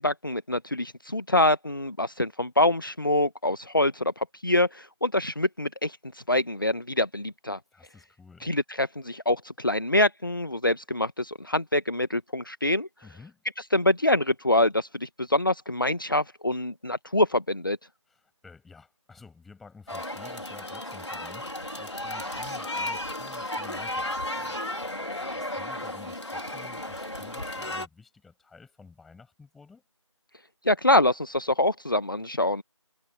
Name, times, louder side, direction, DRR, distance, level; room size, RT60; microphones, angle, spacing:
voice 1, 0.0-7.6 8.4-12.9 13.7-17.8 30.6-32.6, left 1 dB, 40° left, 1.2 m, -25 dB
voice 2, 7.7-8.5 13.0-13.4 18.1-24.9 25.2-29.8, left 4 dB, ahead, 7.5 m, -51 dB
sound 1, 19.9-27.9, left 1 dB, 60° left, 4.3 m, -34 dB
figure-of-eight pair, 175°, 17 cm